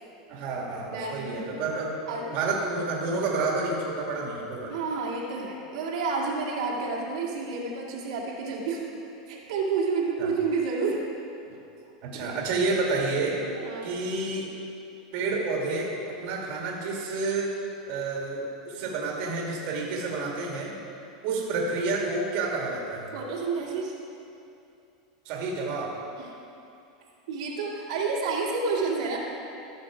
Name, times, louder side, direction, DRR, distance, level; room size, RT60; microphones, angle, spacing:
voice 1, 0.3-4.7 10.2-10.3 12.0-13.4 13.8-14.5 15.1-17.5 17.9-20.7 21.2-23.1 25.3-26.0, right 3 dB, 50° right, -2 dB, 2.1 m, -29 dB
voice 2, 0.9-1.6 2.1-2.3 4.7-8.9 9.3-11.1 13.6-13.9 23.1-24.0 26.2-26.4 27.3-29.2, right 4 dB, 75° right, -4 dB, 2.0 m, -30 dB
14.5 x 6.1 x 5.0 m, 2.7 s
supercardioid pair, 140°, 4 cm